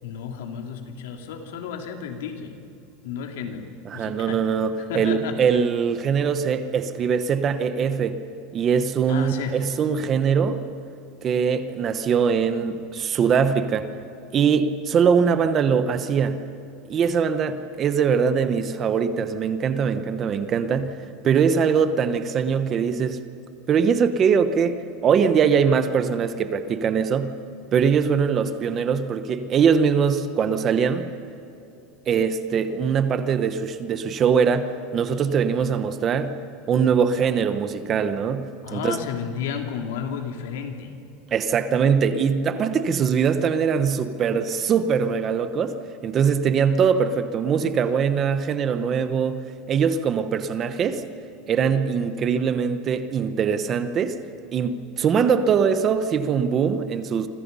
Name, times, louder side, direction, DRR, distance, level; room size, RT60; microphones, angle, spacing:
voice 1, 0.0-2.6 3.0-4.5 4.8-5.6 9.1-9.6 38.6-40.9, left 7 dB, 90° left, 4 dB, 3.2 m, -32 dB
voice 2, 3.9-8.2 8.5-10.7 11.2-13.9 14.3-16.4 16.9-21.0 21.2-23.2 23.7-27.3 27.7-31.1 32.1-36.4 36.7-39.0 41.3-45.8 46.0-51.0 51.5-54.2 54.5-57.3, right 6 dB, 25° right, 10 dB, 1.0 m, -22 dB
28.5 x 25.5 x 5.6 m, 2.8 s
supercardioid pair, 180°, 0 cm